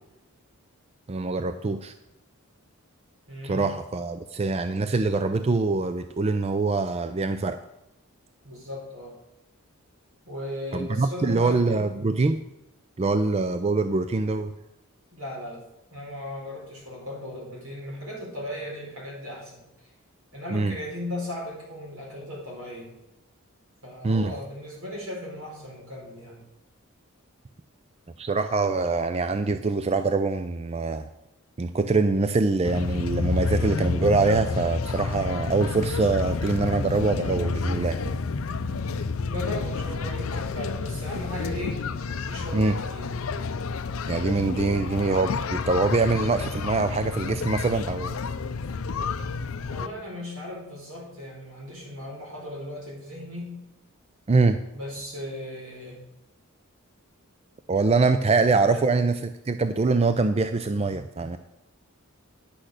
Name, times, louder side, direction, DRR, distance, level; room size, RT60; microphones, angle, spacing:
voice 1, 1.1-1.9 3.4-7.6 10.7-12.4 13.0-14.5 20.5-20.7 24.0-24.3 28.2-31.1 31.6-38.0 42.5-42.8 44.1-48.2 54.3-54.6 57.7-61.4, right 3 dB, 30° right, 10 dB, 0.4 m, -24 dB
voice 2, 3.3-3.6 8.4-9.2 10.2-11.9 15.1-15.6 15.9-19.9 20.3-22.9 23.8-26.4 39.3-41.8 42.3-43.1 49.7-53.6 54.7-56.0 58.2-58.4 58.6-58.8, left 1 dB, 80° right, -2 dB, 4.5 m, -37 dB
sound 1, 32.6-49.9, left 4 dB, 70° left, 0.6 m, -30 dB
10.0 x 6.2 x 6.5 m, 0.88 s
head